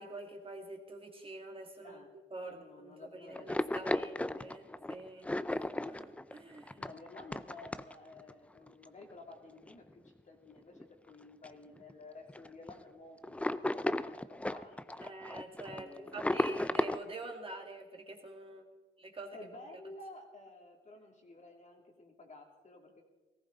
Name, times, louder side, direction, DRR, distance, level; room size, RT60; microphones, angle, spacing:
voice 1, 0.0-2.0 2.3-2.6 3.0-6.8 15.0-18.7 19.0-19.4, right 2 dB, 25° right, 2 dB, 2.1 m, -46 dB
voice 2, 2.4-4.5 6.8-15.1 15.7-16.2 19.3-23.0, left 2 dB, 35° left, 2 dB, 2.6 m, -53 dB
sound 1, 3.3-8.3 8.7-8.8 9.6-9.7 10.1-10.2 10.6-11.1 11.4-11.5 11.8-11.9 12.3-12.7 13.2-17.0, left 1 dB, 5° left, 0.5 m, -35 dB
18.0 x 15.0 x 3.9 m, 1.2 s
cardioid pair, 90°, 20 cm